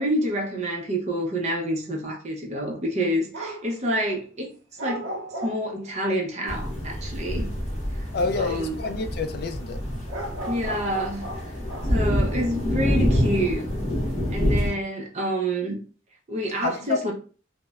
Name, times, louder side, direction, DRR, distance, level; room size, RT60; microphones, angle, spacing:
voice 1, 0.0-4.5 4.8-5.1 5.4-7.5 8.4-8.8 10.5-11.5 11.9-13.6 14.3-15.8 16.3-17.1, right 1 dB, 35° right, 0.6 m, -28 dB
sound 1, 3.3-3.7 4.8-6.0 10.1-12.0, right 1 dB, 85° right, 0.5 m, -35 dB
sound 2, 6.5-14.7, equal, 35° left, 0.8 m, -27 dB
voice 2, 8.1-9.8 16.6-17.0, left 4 dB, 50° left, 0.3 m, -28 dB
2.9 x 2.0 x 2.3 m
head